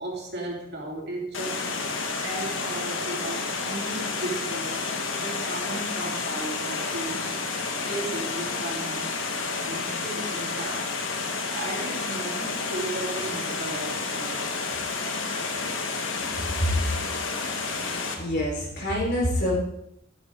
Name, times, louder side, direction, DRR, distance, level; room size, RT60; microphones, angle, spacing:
voice 1, 0.0-7.3 7.8-9.2 9.6-10.9 11.5-14.8 17.7-18.0, right 2 dB, 55° right, -1 dB, 3.0 m, -36 dB
Water, 1.3-18.2, left 4 dB, 85° left, 1.7 m, -30 dB
voice 2, 17.6-19.6, equal, 55° left, -3 dB, 4.2 m, -27 dB
13.0 x 11.5 x 3.7 m, 0.78 s
head